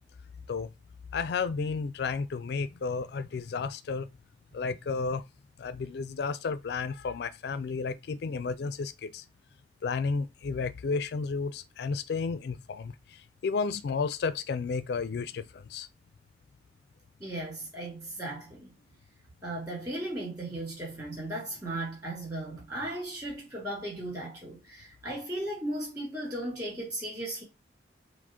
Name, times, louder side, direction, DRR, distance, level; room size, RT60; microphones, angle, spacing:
voice 1, 1.1-4.1 4.5-5.2 5.6-9.2 9.8-12.9 13.4-15.9, left 4 dB, 60° left, 0.3 m, -32 dB
voice 2, 17.2-18.7 19.4-27.4, right 1 dB, 20° right, 2.3 m, -36 dB
4.8 x 2.1 x 3.7 m
head